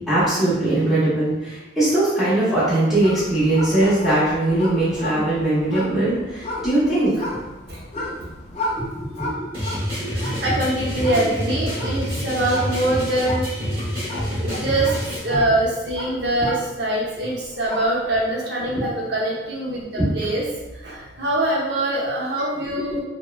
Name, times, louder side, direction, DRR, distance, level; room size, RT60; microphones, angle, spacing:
voice 1, 0.1-7.3 8.8-10.4 11.0-11.1 11.7-12.2 13.6-14.1 14.5-14.7 15.3-15.4 18.7-18.8 19.9-20.1 22.9-23.0, right 1 dB, ahead, -12 dB, 0.7 m, -22 dB
sound 1, 2.9-17.1 17.4-18.1, left 1 dB, 35° left, 0.4 m, -34 dB
sound 2, 9.5-15.2, equal, 30° right, 0.9 m, -27 dB
voice 2, 10.1-19.8 20.1-20.4 20.7-23.0, right 1 dB, 60° right, -4 dB, 0.7 m, -24 dB
2.9 x 2.1 x 2.3 m, 1.0 s
head